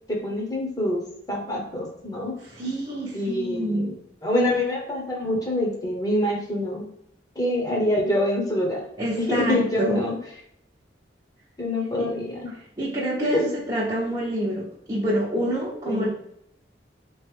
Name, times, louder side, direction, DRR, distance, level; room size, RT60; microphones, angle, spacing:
voice 1, 0.1-2.3 3.1-6.9 7.3-8.8 9.2-10.2 11.6-12.5 13.2-13.4 15.9-16.1, left 1 dB, 20° left, -1 dB, 1.0 m, -25 dB
voice 2, 2.5-3.9 9.0-10.0 12.0-12.1 12.8-16.1, equal, 25° right, -7 dB, 0.9 m, -27 dB
4.2 x 3.1 x 3.4 m, 0.74 s
head